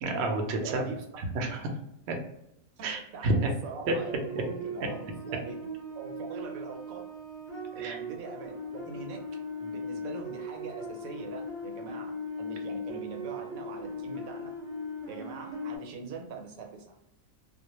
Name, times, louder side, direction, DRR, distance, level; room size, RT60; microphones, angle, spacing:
voice 1, 0.0-0.9 1.2-1.7 2.1-2.2 2.8-3.5 7.8-8.0, right 2 dB, 65° right, 3 dB, 0.7 m, -30 dB
voice 2, 0.6-1.0 2.8-5.6 5.9-7.0 7.7-9.2 9.6-14.5 15.1-17.1, right 4 dB, 80° right, 2 dB, 1.0 m, -42 dB
sound 1, 3.8-15.8, left 1 dB, 5° left, 0.9 m, -39 dB
2.3 x 2.1 x 2.9 m, 0.81 s
omnidirectional pair, 1.4 m